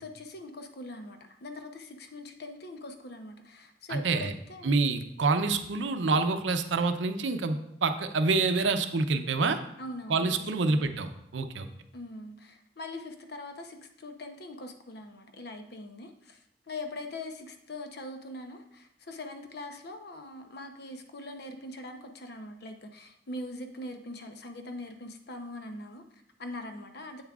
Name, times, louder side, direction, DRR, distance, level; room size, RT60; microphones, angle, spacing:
voice 1, 0.0-4.8 9.8-10.7 11.9-16.4 16.7-27.2, left 2 dB, 60° left, 6 dB, 0.7 m, -42 dB
voice 2, 3.9-4.3 4.6-9.6 10.1-11.7, right 3 dB, 85° right, 8 dB, 0.6 m, -27 dB
8.0 x 7.1 x 2.4 m, 0.75 s
head